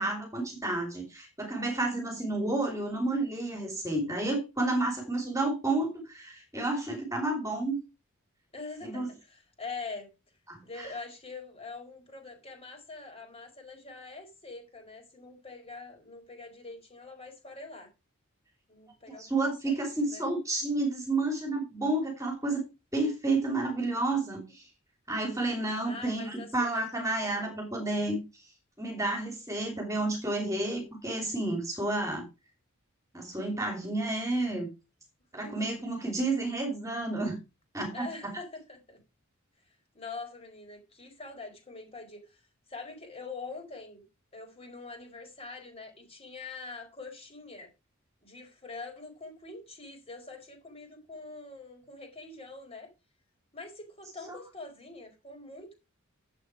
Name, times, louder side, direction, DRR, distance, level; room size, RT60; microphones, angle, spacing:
voice 1, 0.0-7.8 8.8-9.1 10.5-10.9 19.1-22.6 22.9-24.6 25.1-28.4 28.8-32.3 33.1-34.7 35.3-37.4 37.7-38.4 54.3-54.4, right 2 dB, 15° right, 3.0 m, -31 dB
voice 2, 8.5-10.1 10.6-17.9 18.7-20.3 25.8-27.6 35.4-35.5 37.9-39.0 39.9-42.4 42.7-44.0 44.3-47.7 48.2-52.9 53.5-55.7, left 3 dB, 30° left, 4.8 m, -44 dB
11.0 x 7.9 x 4.7 m
head